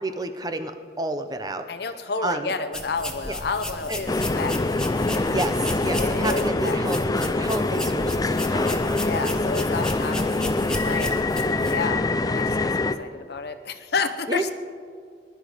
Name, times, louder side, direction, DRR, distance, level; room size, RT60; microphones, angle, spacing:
voice 1, 0.0-1.7 2.2-2.5 3.3-3.4 3.9-4.0 5.3-9.2 10.2-10.4 11.0-11.2 14.3-14.4, right 1 dB, 20° right, 9 dB, 0.7 m, -30 dB
voice 2, 1.7-4.7 5.9-6.9 9.0-10.3 10.7-11.1 11.7-12.0 12.3-14.5, left 4 dB, 60° left, 9 dB, 0.8 m, -30 dB
sound 1, 2.7-11.7, left 1 dB, 5° left, 1.2 m, -35 dB
sound 2, 4.1-13.0, left 2 dB, 20° left, 0.4 m, -24 dB
20.0 x 11.5 x 5.0 m, 2.2 s
head